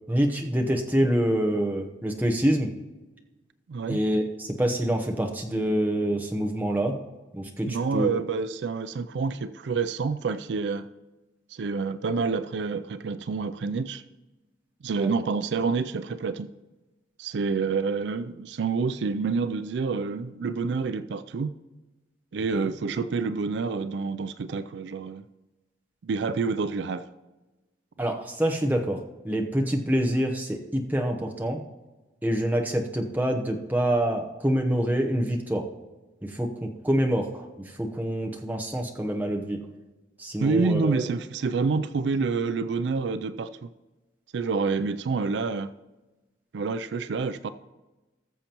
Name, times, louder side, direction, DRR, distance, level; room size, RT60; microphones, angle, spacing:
voice 1, 0.1-2.7 3.9-7.0 7.3-8.1 15.0-15.1 22.6-22.7 28.0-31.6 32.2-35.6 36.2-37.5 37.8-39.6 40.2-41.0, equal, 10° right, 0.9 m, -26 dB
voice 2, 3.7-4.0 7.7-10.9 11.5-14.0 14.8-16.5 17.2-21.5 22.3-25.2 26.0-27.1 40.4-43.7 44.3-45.7 46.5-47.5, right 4 dB, 75° right, 0.4 m, -28 dB
19.5 x 7.1 x 3.0 m
head